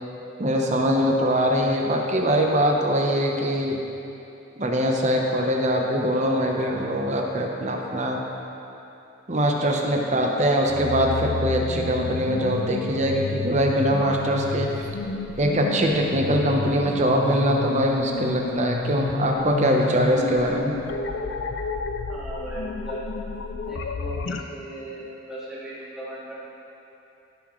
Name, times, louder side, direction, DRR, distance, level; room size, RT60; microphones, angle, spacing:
voice 1, 0.4-3.8 4.6-8.2 9.3-14.8 15.4-20.7, equal, 40° right, 1 dB, 0.8 m, -22 dB
sound 1, 10.7-24.4, left 4 dB, 80° left, 0.4 m, -31 dB
voice 2, 22.1-23.0 23.7-26.3, right 1 dB, 5° right, -11 dB, 2.1 m, -37 dB
13.5 x 6.2 x 3.1 m, 2.9 s
head